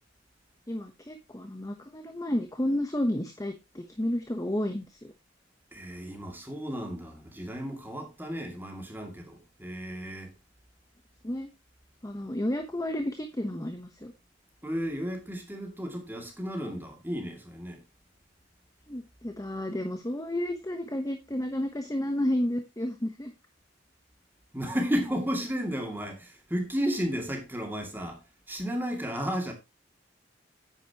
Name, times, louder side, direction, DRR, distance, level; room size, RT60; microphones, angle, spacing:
voice 1, 0.7-5.1 11.2-11.5 12.0-14.1 18.9-23.3, left 1 dB, 20° left, 1.1 m, -31 dB
voice 2, 5.7-10.3 14.6-17.8 24.5-28.2 28.5-29.5, equal, 10° right, 2.4 m, -33 dB
10.0 x 9.2 x 2.9 m
head